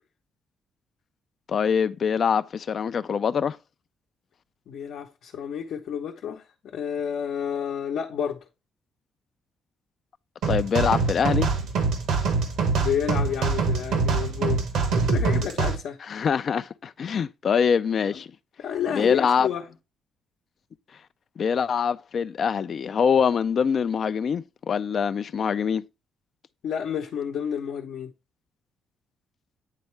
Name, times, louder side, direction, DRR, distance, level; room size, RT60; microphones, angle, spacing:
voice 1, 1.5-3.6 10.5-11.5 16.1-18.3 19.0-19.5 21.4-25.8, left 7 dB, 55° left, 0.4 m, -24 dB
voice 2, 4.7-6.5 6.7-8.4 12.8-14.6 14.9-16.0 18.1-18.2 18.6-19.7 26.6-28.1, left 8 dB, 70° left, 0.8 m, -30 dB
sound 1, 10.4-15.8, right 4 dB, 80° right, 1.2 m, -24 dB
9.2 x 3.5 x 3.1 m
cardioid pair, 90°, 0 cm